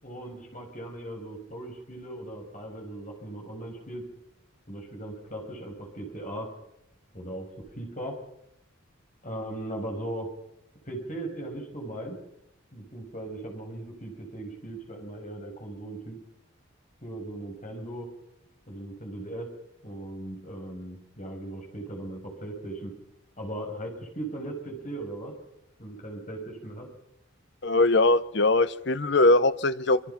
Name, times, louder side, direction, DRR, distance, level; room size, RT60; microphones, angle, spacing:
voice 1, 0.0-4.0 4.7-6.5 7.1-7.5 7.8-8.2 9.2-10.3 10.8-12.2 12.7-16.2 17.0-18.1 18.7-19.5 19.8-22.9 23.4-25.3 25.8-26.9, right 1 dB, 35° left, 1 dB, 6.0 m, -38 dB
voice 2, 27.6-30.0, left 2 dB, 55° left, 14 dB, 0.8 m, -21 dB
26.0 x 23.0 x 5.8 m, 0.79 s
head